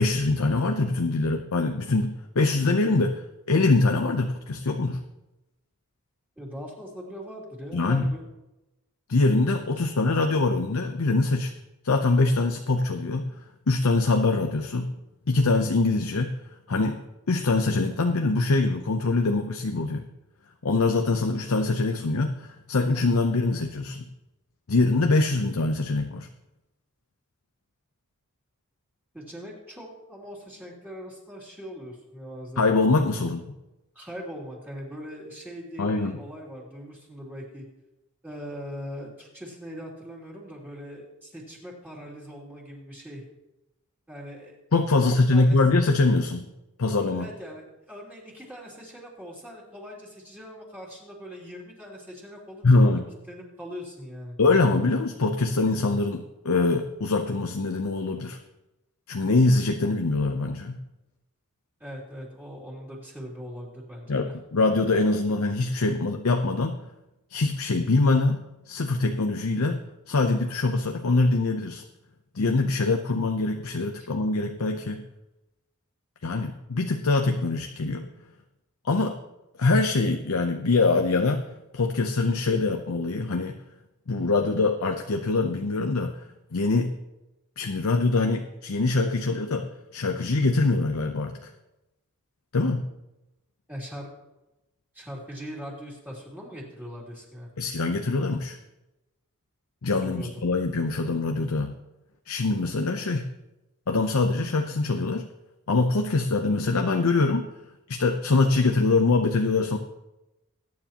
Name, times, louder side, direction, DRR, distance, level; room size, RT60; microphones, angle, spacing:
voice 1, 0.0-5.0 7.7-8.1 9.1-11.5 11.8-13.3 13.7-14.9 15.3-16.3 16.7-17.0 17.3-20.1 20.6-24.0 24.7-26.3 32.6-33.4 35.8-36.1 44.7-46.5 46.8-47.3 52.6-53.0 54.4-58.4 59.1-60.8 64.1-66.8 67.3-71.8 72.3-75.0 76.2-78.1 78.8-79.2 79.6-81.4 81.7-83.6 84.1-87.0 87.6-91.5 92.5-92.9 97.6-98.6 99.8-101.7 102.3-103.3 103.9-105.3 105.7-107.5 107.9-109.8, left 3 dB, 75° left, 5 dB, 0.7 m, -24 dB
voice 2, 6.4-8.3 29.1-32.7 33.9-37.7 38.2-43.2 44.1-44.6 45.0-45.6 47.1-53.0 53.3-54.4 61.8-64.4 93.7-94.1 94.9-97.5 100.0-100.4, equal, 10° right, -4 dB, 2.9 m, -41 dB
21.0 x 9.5 x 3.0 m, 0.98 s
head